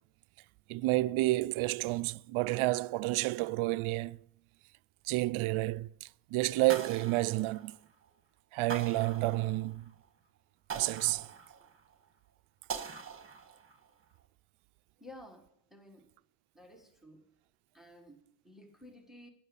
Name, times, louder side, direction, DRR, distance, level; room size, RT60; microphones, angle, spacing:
voice 1, 0.7-4.2 5.1-7.8 8.5-9.9 10.7-11.3, right 19 dB, 80° right, 0.6 m, -30 dB
sound 1, 6.7-8.0 8.7-9.9 10.7-11.9 12.7-13.9, right 6 dB, 25° right, 1.5 m, -43 dB
voice 2, 15.0-16.1 16.5-17.3 17.7-19.3, left 1 dB, ahead, 1.4 m, -54 dB
12.0 x 10.5 x 8.3 m
cardioid pair, 170°, 48 cm